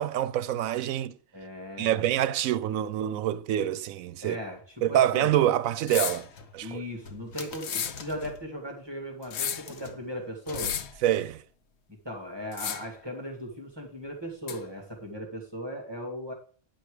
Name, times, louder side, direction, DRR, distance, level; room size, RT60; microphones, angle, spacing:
voice 1, 0.0-1.2 1.8-4.4 4.8-6.3 6.5-6.8 11.0-11.4, right 12 dB, 85° right, 1.0 m, -26 dB
voice 2, 1.3-2.0 4.2-4.6 4.9-5.3 6.6-10.7 11.9-16.3, equal, 20° right, 2.1 m, -38 dB
sound 1, 5.9-6.3 7.6-8.0 9.2-9.7 10.5-11.0 12.5-13.0 14.5-14.6, left 9 dB, 60° left, 0.9 m, -32 dB
sound 2, 6.2-8.5 9.2-11.2, left 3 dB, 80° left, 1.6 m, -45 dB
10.5 x 6.3 x 4.9 m
omnidirectional pair, 1.4 m